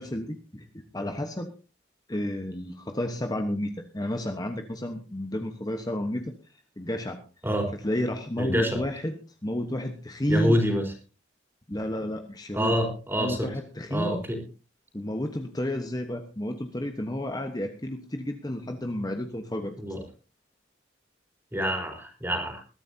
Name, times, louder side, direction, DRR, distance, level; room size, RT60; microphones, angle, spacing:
voice 1, 0.0-1.5 2.1-6.3 6.8-7.2 7.8-9.1 9.4-10.6 11.7-12.7 13.2-14.2 14.9-19.7, left 1 dB, 20° left, 5 dB, 1.1 m, -31 dB
voice 2, 8.4-8.8 10.3-10.8 12.5-13.5 13.9-14.4 19.8-20.0 21.5-22.6, equal, 10° right, 3 dB, 3.9 m, -26 dB
21.5 x 13.5 x 2.8 m, 0.34 s
head